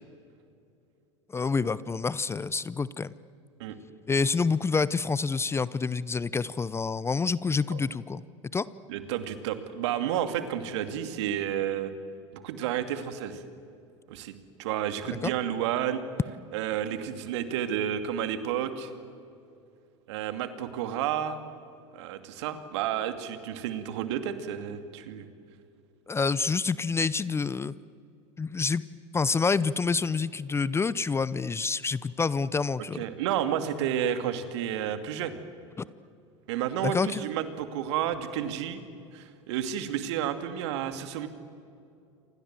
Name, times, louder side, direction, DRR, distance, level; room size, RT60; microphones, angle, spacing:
voice 1, 1.3-3.1 4.1-8.2 8.5-8.7 15.2-15.3 26.1-27.7 28.4-28.8 29.1-33.0 35.8-35.9 36.8-37.2, left 4 dB, 15° left, 19 dB, 0.7 m, -27 dB
voice 2, 8.9-11.9 12.3-13.4 14.1-14.3 14.6-16.0 16.5-18.9 20.1-21.4 21.9-25.3 32.9-35.4 36.5-38.8 39.1-41.3, right 10 dB, 65° right, 9 dB, 2.4 m, -31 dB
29.0 x 26.0 x 7.6 m, 2.5 s
hypercardioid pair, 85°, 16 cm